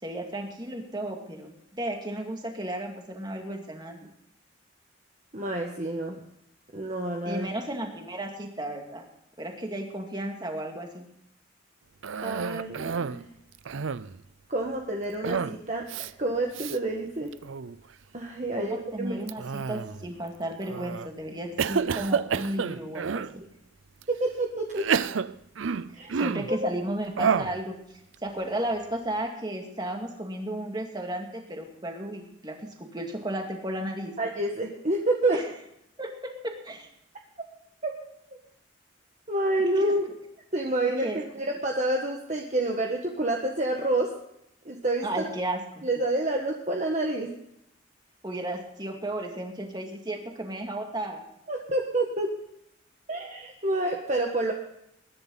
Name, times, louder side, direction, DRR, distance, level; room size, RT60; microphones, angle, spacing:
voice 1, 0.0-4.1 7.3-9.0 9.4-11.1 18.5-23.4 25.9-27.7 28.2-34.1 35.3-35.5 36.0-36.9 39.8-39.9 41.0-41.2 45.0-45.9 48.2-51.2, right 1 dB, 20° right, 2 dB, 2.4 m, -34 dB
voice 2, 5.3-6.2 6.7-7.5 12.2-13.2 14.5-17.3 18.1-19.3 24.1-24.9 26.0-26.7 34.2-35.4 37.4-37.5 37.8-37.9 39.3-40.1 40.5-44.1 44.6-45.3 45.8-47.3 51.5-52.3 53.1-54.5, right 1 dB, 35° right, 1 dB, 1.5 m, -28 dB
Cough, 12.0-13.2 13.5-14.2 15.2-15.6 15.9-16.1 16.5-16.8 17.3-17.8 19.3-20.1 20.7-21.1 21.6-23.3 24.0-24.1 24.7-26.6 27.2-27.6, right 6 dB, 75° right, 0.5 m, -29 dB
21.0 x 11.0 x 4.0 m, 0.78 s
head